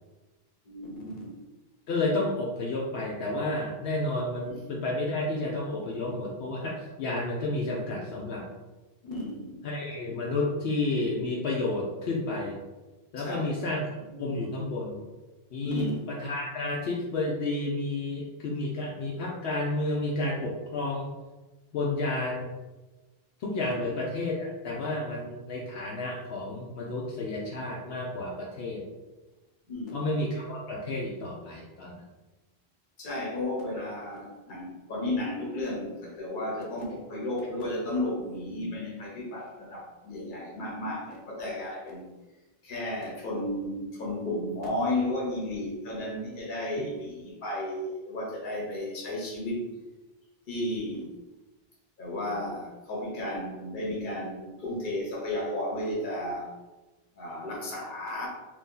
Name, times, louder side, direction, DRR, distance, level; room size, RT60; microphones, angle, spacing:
voice 1, 0.6-1.4 4.5-4.6 9.0-9.6 13.2-13.5 13.9-14.3 15.6-16.0 23.6-23.9 29.7-30.3 33.0-42.0 42.6-49.6 50.5-51.1 52.0-56.5 57.1-58.3, left 1 dB, 55° left, -2 dB, 1.0 m, -33 dB
voice 2, 1.9-8.4 9.6-12.6 13.1-13.9 14.2-15.0 15.5-21.1 21.7-22.5 23.4-28.8 29.9-32.0, left 2 dB, 80° left, -3 dB, 0.8 m, -31 dB
2.7 x 2.7 x 3.7 m, 1.1 s
omnidirectional pair, 1.0 m